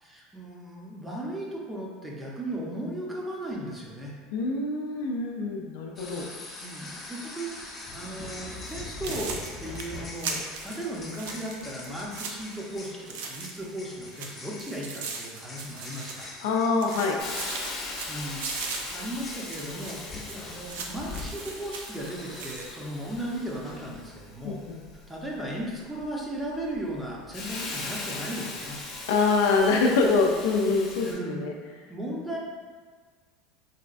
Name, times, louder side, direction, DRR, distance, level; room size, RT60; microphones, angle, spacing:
voice 1, 0.0-4.1 6.5-16.3 18.1-24.6 25.1-28.8 31.0-32.4, right 1 dB, 10° right, -3 dB, 0.7 m, -36 dB
voice 2, 4.3-6.2 16.4-17.2 24.4-24.8 29.1-31.5, left 4 dB, 80° left, 1 dB, 0.4 m, -25 dB
sound 1, 6.0-24.0, left 2 dB, 25° left, 0.6 m, -43 dB
sound 2, 8.6-8.7 9.0-13.8 14.1-16.5 16.8-22.7, right 5 dB, 80° right, 0.4 m, -39 dB
Hiss, 17.2-31.1, left 2 dB, 55° left, 0.9 m, -40 dB
4.1 x 2.2 x 2.5 m, 1.5 s
supercardioid pair, 100°, 0 cm